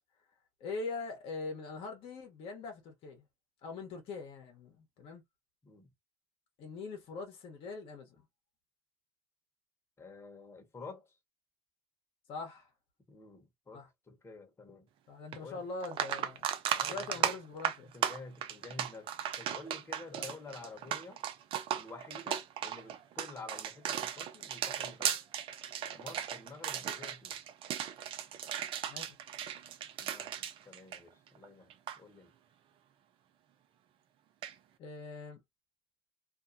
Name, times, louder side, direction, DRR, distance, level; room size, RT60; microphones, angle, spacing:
voice 1, 0.6-3.2 3.6-5.2 6.6-8.2 12.3-12.7 13.7-13.9 15.1-16.5 16.8-17.9 20.1-20.3 28.9-29.2 34.8-35.4, left 3 dB, 65° left, 1.0 m, -42 dB
voice 2, 10.0-11.2 13.1-14.9 15.4-15.7 16.7-17.3 17.9-19.1 19.4-21.2 21.7-25.2 26.0-27.4 30.0-31.7 32.0-32.3, left 3 dB, 25° left, 1.1 m, -50 dB
sound 1, 15.3-15.4 15.8-31.4 31.7-32.0 34.4-34.5, right 9 dB, 60° right, 0.6 m, -36 dB
2.6 x 2.2 x 2.6 m
supercardioid pair, 75°, 10 cm